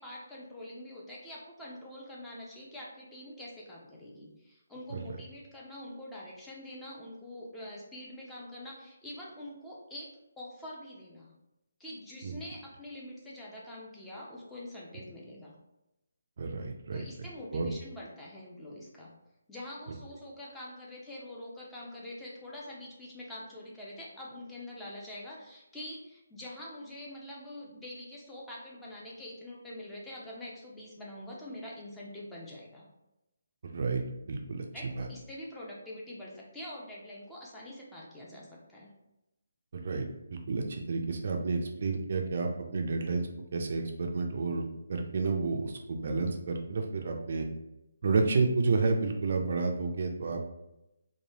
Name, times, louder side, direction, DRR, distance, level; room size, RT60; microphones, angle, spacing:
voice 1, 0.0-11.3 11.8-15.6 16.9-19.1 19.5-32.9 34.7-38.9, left 1 dB, 5° left, -5 dB, 0.5 m, -45 dB
voice 2, 16.4-17.1 17.5-17.7 33.6-34.0 34.3-34.6 35.0-35.1 39.7-40.1 40.5-47.5 48.0-50.4, right 4 dB, 50° right, 3 dB, 0.4 m, -30 dB
3.1 x 2.2 x 2.8 m, 0.92 s
figure-of-eight pair, 145°, 0 cm